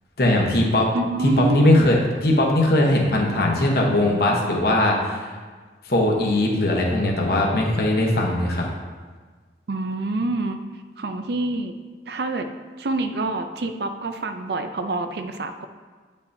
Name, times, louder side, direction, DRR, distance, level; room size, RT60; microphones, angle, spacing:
voice 1, 0.2-0.9 1.4-5.3 5.9-8.7, left 1 dB, 55° left, -1 dB, 1.0 m, -20 dB
voice 2, 0.9-2.0 9.7-10.6 11.0-11.7 12.1-12.5 12.8-15.7, right 2 dB, 65° right, 8 dB, 0.5 m, -27 dB
9.3 x 5.4 x 2.7 m, 1.5 s
head